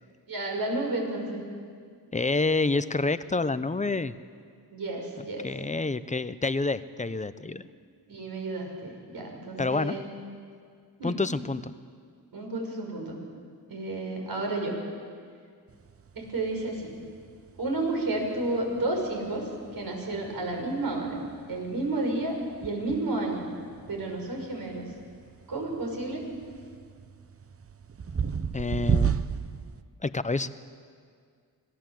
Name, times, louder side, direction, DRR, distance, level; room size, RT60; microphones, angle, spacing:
voice 1, 0.3-1.4 4.7-5.5 8.1-10.0 11.0-11.2 12.3-13.2 13.7-14.8 16.1-16.9 17.6-21.2 21.5-23.5 23.9-24.9 25.5-26.2, right 2 dB, 60° right, 1 dB, 6.2 m, -31 dB
voice 2, 2.1-4.1 5.4-7.7 9.6-10.0 11.0-11.7 28.5-29.1 30.0-30.5, left 3 dB, 20° left, 14 dB, 0.7 m, -28 dB
sound 1, 15.7-29.8, right 7 dB, 35° right, 0.8 m, -35 dB
26.0 x 18.0 x 7.7 m, 2.1 s
wide cardioid pair, 110°, 41 cm